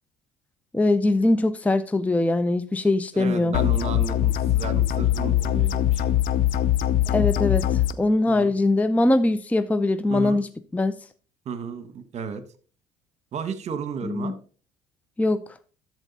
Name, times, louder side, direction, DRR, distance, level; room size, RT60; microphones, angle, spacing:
voice 1, 0.7-3.5 7.1-10.5 10.7-11.0 14.0-14.3 15.2-15.4, left 2 dB, 10° left, 0.5 m, -22 dB
voice 2, 3.1-6.1 8.3-8.5 10.1-10.4 11.4-12.4 13.3-14.4, right 6 dB, 50° right, 1.2 m, -33 dB
sound 1, 3.5-7.9, left 12 dB, 65° left, 0.7 m, -22 dB
13.0 x 4.6 x 4.0 m
supercardioid pair, 80°, 15 cm